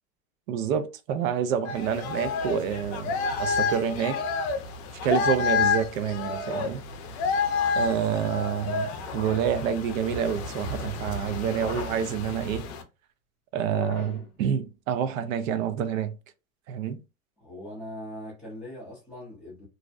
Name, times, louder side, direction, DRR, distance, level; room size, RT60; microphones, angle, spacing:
voice 1, 0.5-4.2 5.0-6.8 7.7-12.7 13.5-16.1 16.7-17.0, right 8 dB, 65° right, 0.6 m, -28 dB
sound 1, 1.6-12.8, left 5 dB, 50° left, 0.5 m, -30 dB
sound 2, 6.4-7.0 9.0-9.6 11.5-12.2 13.6-14.4, left 4 dB, 20° left, 0.8 m, -40 dB
voice 2, 17.4-19.7, left 1 dB, ahead, 0.4 m, -41 dB
2.5 x 2.0 x 2.4 m
supercardioid pair, 145°, 42 cm